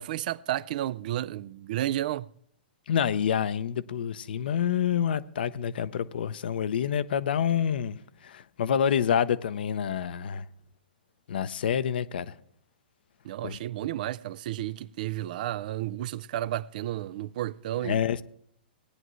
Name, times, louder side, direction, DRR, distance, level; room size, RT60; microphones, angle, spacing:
voice 1, 0.0-2.3 13.2-18.0, right 13 dB, 55° right, 0.4 m, -32 dB
voice 2, 2.9-10.4 11.3-12.4 13.4-13.6 17.8-18.2, left 8 dB, 70° left, 0.7 m, -27 dB
19.0 x 9.8 x 3.1 m
hypercardioid pair, 125°, 6 cm